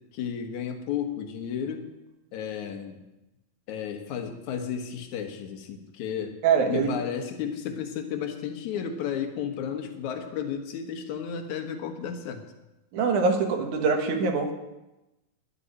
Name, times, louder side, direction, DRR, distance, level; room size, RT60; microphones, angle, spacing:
voice 1, 0.1-1.9 2.3-3.0 3.7-6.4 6.7-12.4, left 8 dB, 65° left, 6 dB, 2.5 m, -33 dB
voice 2, 6.4-6.9 12.9-14.5, right 5 dB, 65° right, 5 dB, 2.7 m, -23 dB
11.0 x 8.2 x 9.8 m, 0.99 s
omnidirectional pair, 3.9 m